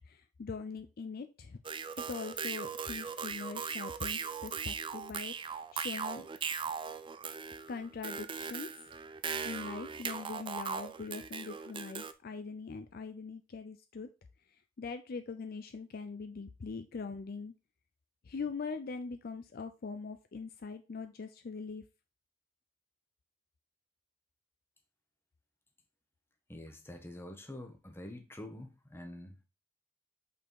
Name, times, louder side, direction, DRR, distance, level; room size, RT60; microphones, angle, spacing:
voice 1, 0.1-1.6 2.0-5.3 5.7-6.3 7.7-8.7 9.4-14.1 14.8-17.5 18.3-21.8, left 4 dB, 50° left, 0.4 m, -42 dB
sound 1, 1.6-12.1, right 6 dB, 25° right, 0.4 m, -39 dB
voice 2, 26.5-29.4, left 1 dB, 10° left, 1.0 m, -46 dB
5.5 x 4.3 x 4.6 m
head